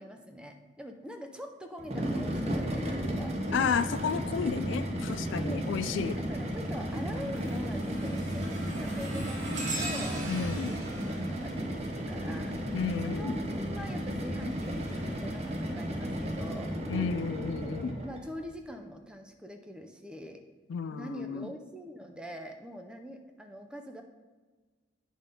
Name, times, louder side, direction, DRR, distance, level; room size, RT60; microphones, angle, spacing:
voice 1, 0.0-3.4 5.4-10.8 11.1-16.7 17.4-17.7 18.0-20.4 20.9-24.0, equal, 5° right, 5 dB, 0.5 m, -44 dB
sound 1, 1.8-18.2, equal, 35° right, 0.8 m, -34 dB
voice 2, 3.5-6.2 10.3-10.7 12.7-13.4 16.9-17.9 20.7-21.5, left 6 dB, 70° left, 13 dB, 0.3 m, -32 dB
sound 2, 5.0-5.4 5.9-12.7 13.9-16.1 16.8-17.0 17.9-18.0, right 1 dB, 75° right, 2.1 m, -42 dB
8.8 x 3.7 x 5.3 m, 1.3 s
head